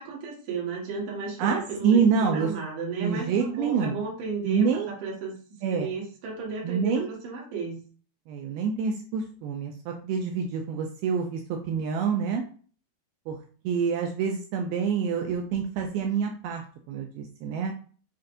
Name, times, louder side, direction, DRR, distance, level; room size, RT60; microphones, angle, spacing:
voice 1, 0.0-5.3 5.7-7.8, right 4 dB, 60° right, -3 dB, 1.6 m, -34 dB
voice 2, 1.4-2.5 3.0-4.0 4.5-4.9 5.6-5.9 6.6-7.1 8.3-12.4 13.3-13.4 13.6-17.7, right 6 dB, 80° right, 3 dB, 2.3 m, -27 dB
6.5 x 2.4 x 2.5 m, 0.41 s
omnidirectional pair, 4.6 m